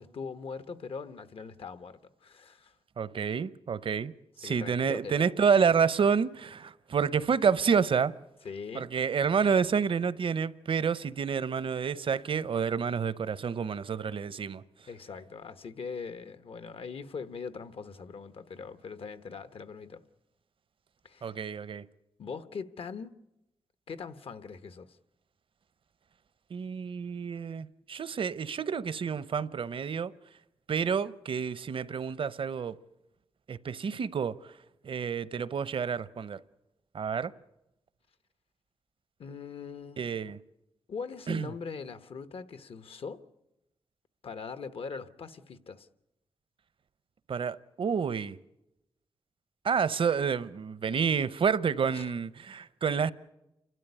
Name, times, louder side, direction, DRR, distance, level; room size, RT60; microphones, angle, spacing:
voice 1, 0.0-2.7 4.4-5.2 8.4-8.9 14.9-20.0 21.0-21.4 22.2-23.1 23.9-25.0 39.2-40.0 40.9-43.2 44.2-45.9 51.9-52.1, left 5 dB, 75° left, 1.1 m, -41 dB
voice 2, 3.0-4.1 4.4-8.1 8.7-14.6 21.2-21.8 26.5-30.1 30.7-32.8 33.5-34.4 34.8-36.4 36.9-37.3 40.0-40.4 41.3-41.5 47.3-48.4 49.6-53.1, right 6 dB, 65° right, 0.7 m, -29 dB
29.0 x 12.5 x 9.8 m
wide cardioid pair, 100°, 10 cm